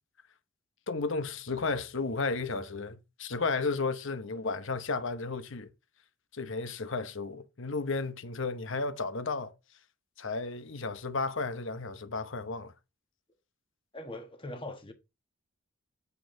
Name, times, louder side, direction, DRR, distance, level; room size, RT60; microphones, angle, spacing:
voice 1, 0.9-5.7 6.3-9.5 10.2-12.7, left 3 dB, 60° left, 0.9 m, -33 dB
voice 2, 13.9-14.9, left 1 dB, 25° left, 1.3 m, -41 dB
8.5 x 7.2 x 3.8 m
head